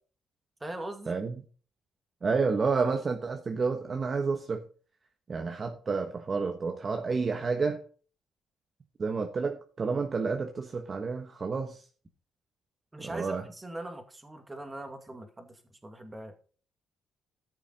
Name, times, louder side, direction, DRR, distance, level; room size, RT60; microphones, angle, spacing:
voice 1, 0.6-1.2 12.9-16.4, right 1 dB, 15° right, 6 dB, 2.2 m, -41 dB
voice 2, 2.2-4.6 5.3-7.8 9.0-11.8 13.0-13.5, right 4 dB, 40° right, 4 dB, 1.3 m, -30 dB
13.5 x 7.0 x 4.2 m, 0.41 s
cardioid pair, 90°, 0 cm